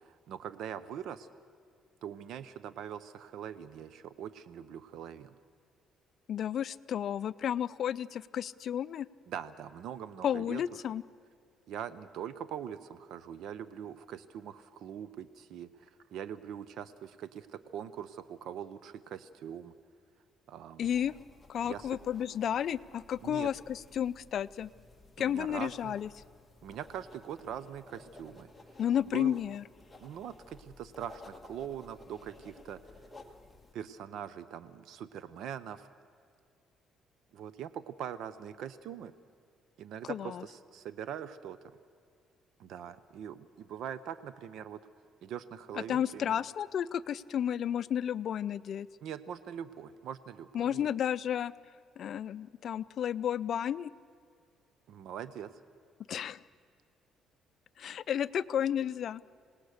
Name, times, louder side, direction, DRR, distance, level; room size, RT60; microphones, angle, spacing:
voice 1, 0.1-1.3 2.0-5.3 9.3-10.6 11.7-19.7 20.5-20.9 21.6-21.9 23.2-23.5 25.2-25.9 26.6-28.5 29.1-29.4 30.0-32.8 33.7-35.9 37.3-39.1 39.8-41.6 42.6-44.8 45.2-46.4 49.0-50.9 54.9-55.5, right 9 dB, 70° right, 14 dB, 0.7 m, -42 dB
voice 2, 6.3-9.1 10.2-11.0 20.8-21.1 21.5-24.7 25.2-26.1 28.8-29.6 40.0-40.4 45.9-48.9 50.5-51.5 52.0-53.9 56.1-56.4 57.8-59.2, left 9 dB, 55° left, 14 dB, 0.5 m, -32 dB
sound 1, 20.8-33.7, left 2 dB, 10° left, 1.8 m, -55 dB
27.0 x 18.5 x 6.6 m, 2.3 s
cardioid pair, 125°, 0 cm